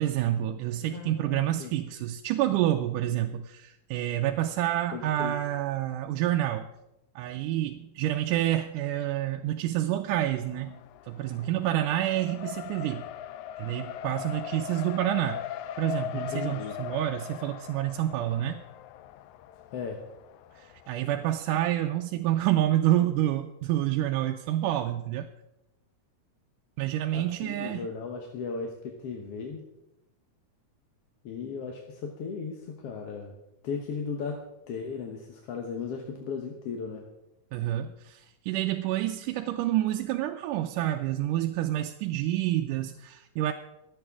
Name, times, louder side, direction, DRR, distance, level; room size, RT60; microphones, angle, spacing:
voice 1, 0.0-6.7 7.2-10.8 11.1-13.1 13.6-15.4 15.8-18.6 20.6-25.3 26.8-27.9 37.5-43.5, right 13 dB, 90° right, 4 dB, 2.2 m, -28 dB
voice 2, 0.9-1.7 2.5-2.6 4.9-5.4 16.1-16.8 19.7-20.0 27.1-29.7 31.2-33.3 33.6-34.4 34.7-37.1, left 5 dB, 60° left, 2 dB, 1.9 m, -36 dB
Race car auto racing, 10.4-21.4, left 11 dB, 80° left, 1.9 m, -40 dB
25.0 x 8.6 x 3.6 m, 0.89 s
omnidirectional pair, 3.6 m